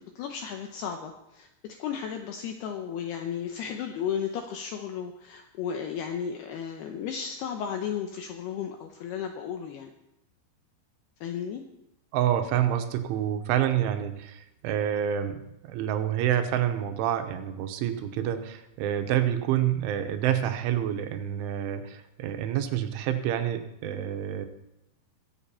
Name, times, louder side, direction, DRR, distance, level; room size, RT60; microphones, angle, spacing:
voice 1, 0.0-9.9 11.2-11.6, left 8 dB, 80° left, 4 dB, 2.3 m, -34 dB
voice 2, 12.1-24.5, right 10 dB, 85° right, 7 dB, 3.3 m, -28 dB
22.5 x 7.8 x 4.3 m, 0.85 s
omnidirectional pair, 5.6 m